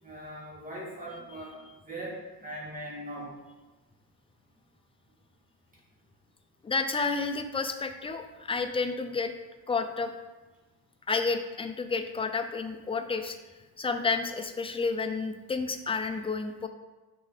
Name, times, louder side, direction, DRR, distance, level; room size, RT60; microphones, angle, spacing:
voice 1, 0.0-1.6 1.9-3.4, right 1 dB, 20° right, -5 dB, 2.1 m, -40 dB
voice 2, 6.6-9.3 9.7-10.1 11.1-13.4 13.8-16.7, left 4 dB, 15° left, 7 dB, 0.4 m, -30 dB
6.5 x 5.3 x 4.0 m, 1.2 s
cardioid pair, 145°, 39 cm